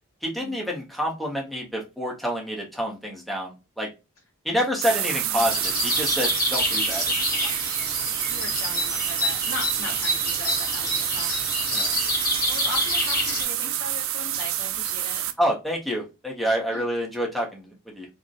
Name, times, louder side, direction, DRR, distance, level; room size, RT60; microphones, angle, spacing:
voice 1, 0.2-3.9 4.4-7.6 11.7-11.9 15.4-18.1, equal, ahead, 0.6 m, -28 dB
sound 1, 4.8-15.3, right 11 dB, 70° right, 0.3 m, -28 dB
sound 2, 5.4-13.4, left 1 dB, 40° left, 0.9 m, -28 dB
voice 2, 8.3-11.6 12.5-15.3 16.7-16.8, left 2 dB, 65° left, 0.7 m, -38 dB
2.6 x 2.0 x 2.3 m
head